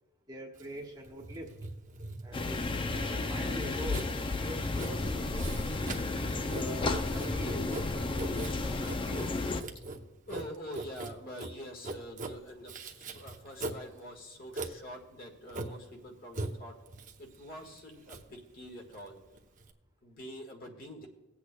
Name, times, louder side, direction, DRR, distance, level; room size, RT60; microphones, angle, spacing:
voice 1, 0.3-1.5 2.2-2.6 2.9-5.7 6.5-9.3, right 1 dB, 20° right, -1 dB, 1.2 m, -44 dB
Writing, 0.6-19.7, right 2 dB, 35° right, 0.8 m, -42 dB
sound 1, 2.3-9.6, left 2 dB, 25° left, 0.4 m, -32 dB
voice 2, 10.3-16.7 17.2-19.2 20.0-21.1, equal, 45° left, 2 dB, 1.7 m, -46 dB
19.0 x 8.3 x 2.3 m, 1.0 s
head